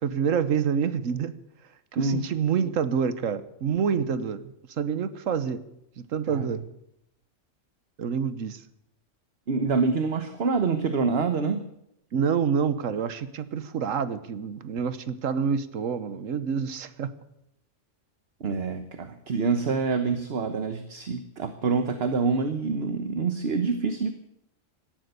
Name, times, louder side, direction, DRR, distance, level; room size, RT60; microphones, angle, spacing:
voice 1, 0.0-1.3 1.9-5.6 6.0-6.6 8.0-8.6 12.1-17.1, right 7 dB, 80° right, 14 dB, 1.4 m, -27 dB
voice 2, 2.0-2.3 6.3-6.4 9.5-11.6 18.4-24.1, right 4 dB, 55° right, 8 dB, 1.2 m, -26 dB
17.0 x 12.5 x 6.7 m, 0.79 s
omnidirectional pair, 1.3 m